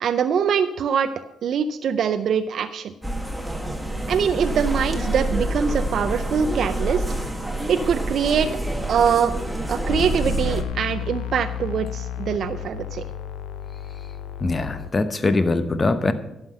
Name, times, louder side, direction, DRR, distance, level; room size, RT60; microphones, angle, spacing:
voice 1, 0.0-1.1 1.4-2.9 4.1-7.0 7.7-8.5 8.9-9.3 9.7-13.0, right 7 dB, 65° right, 9 dB, 0.5 m, -23 dB
sound 1, 3.0-10.6, right 1 dB, 5° right, 1.3 m, -27 dB
sound 2, 9.8-14.9, left 9 dB, 90° left, 0.6 m, -32 dB
voice 2, 14.4-16.1, left 3 dB, 30° left, 11 dB, 0.9 m, -22 dB
11.5 x 5.8 x 6.5 m, 0.88 s
cardioid pair, 90°, 0 cm